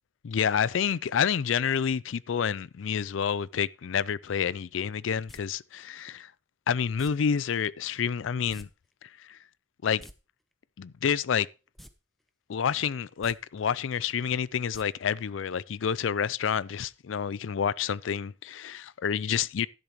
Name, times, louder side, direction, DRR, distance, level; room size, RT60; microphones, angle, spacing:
voice 1, 0.2-6.3 6.7-8.7 9.0-9.4 9.8-10.0 10.8-11.5 12.5-19.7, left 7 dB, 80° left, 0.4 m, -29 dB
sound 1, 5.3-5.4 7.0-7.1 8.5-8.7 8.9-9.0 9.8-10.1 11.7-11.9 12.3-12.4 13.1-13.3 14.7-14.8 15.2-15.3, equal, ahead, 0.6 m, -48 dB
12.0 x 10.0 x 3.0 m
head